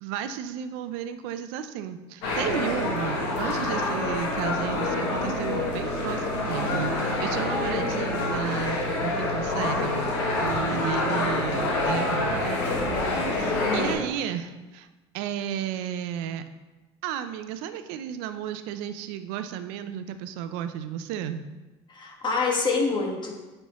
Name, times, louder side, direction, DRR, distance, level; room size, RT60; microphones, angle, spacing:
voice 1, 0.0-10.0 10.4-12.5 13.3-14.9 15.1-16.4 17.0-21.4, right 9 dB, 75° right, 10 dB, 0.5 m, -33 dB
sound 1, 2.2-13.9, left 2 dB, 80° left, 1.7 m, -27 dB
voice 2, 13.6-14.0 21.9-23.3, left 4 dB, 35° left, 0 dB, 1.6 m, -26 dB
9.2 x 4.5 x 3.0 m, 1.1 s
supercardioid pair, 85°, 14 cm